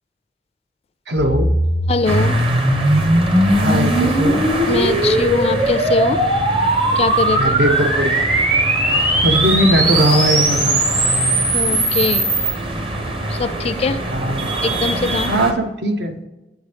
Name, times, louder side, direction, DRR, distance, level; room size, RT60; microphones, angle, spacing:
voice 1, 1.1-1.5 3.5-4.4 7.3-8.3 9.2-10.8 14.1-14.5 15.3-16.1, right 1 dB, 70° right, 6 dB, 0.8 m, -19 dB
sound 1, 1.2-12.5, right 1 dB, 50° right, 1.7 m, -18 dB
voice 2, 1.9-2.4 4.7-6.2 7.0-7.5 11.5-12.3 13.3-14.0 14.6-15.3, left 3 dB, 35° left, 12 dB, 0.3 m, -21 dB
sound 2, 2.0-15.5, right 1 dB, 30° right, 0.7 m, -25 dB
8.1 x 4.6 x 3.4 m, 1.0 s
head